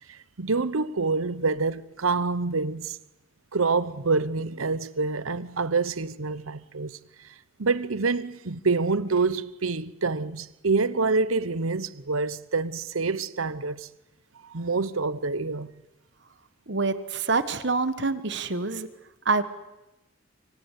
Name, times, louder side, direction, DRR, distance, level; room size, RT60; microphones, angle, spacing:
voice 1, 0.1-3.0 3.5-7.0 7.6-13.9 14.4-15.7, right 4 dB, 85° right, 1.0 m, -27 dB
voice 2, 16.7-18.9 19.2-19.4, right 3 dB, 55° right, 1.4 m, -26 dB
25.5 x 25.5 x 8.3 m
head